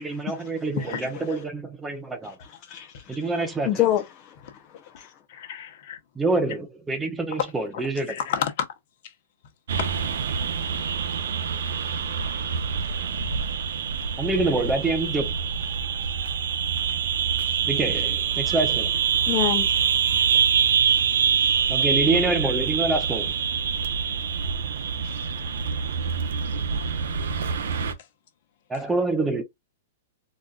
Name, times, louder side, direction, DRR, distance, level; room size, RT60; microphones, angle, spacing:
voice 1, 0.0-2.4 3.1-3.9 6.2-8.1 14.2-15.3 17.7-19.0 21.7-23.3 28.7-29.4, right 2 dB, 10° right, 0.6 m, -26 dB
voice 2, 0.8-1.2 5.3-6.0 7.7-7.8 8.1-8.7 9.0-9.1 25.0-25.2, left 9 dB, 55° left, 1.0 m, -31 dB
voice 3, 2.7-3.2 3.7-4.3 5.0-5.1 19.3-19.7 20.1-20.3, left 12 dB, 30° left, 0.6 m, -26 dB
sound 1, 9.7-27.9, right 7 dB, 80° right, 0.7 m, -25 dB
4.0 x 2.5 x 2.3 m
hypercardioid pair, 145°, 0 cm